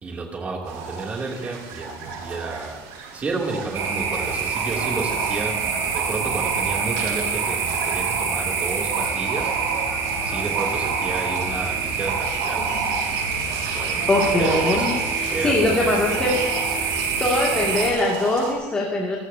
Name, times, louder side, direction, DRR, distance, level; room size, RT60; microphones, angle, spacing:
voice 1, 0.0-9.7 10.2-12.8 13.7-14.1 14.4-16.4, right 3 dB, 20° right, -1 dB, 2.9 m, -31 dB
sound 1, 0.6-18.5, right 4 dB, 70° right, 7.2 m, -32 dB
sound 2, 3.7-17.9, right 5 dB, 40° right, 5.0 m, -26 dB
voice 2, 14.1-16.4 17.2-19.2, left 2 dB, 15° left, -3 dB, 2.4 m, -22 dB
29.5 x 15.0 x 2.8 m, 1.2 s
cardioid pair, 165°, 7 cm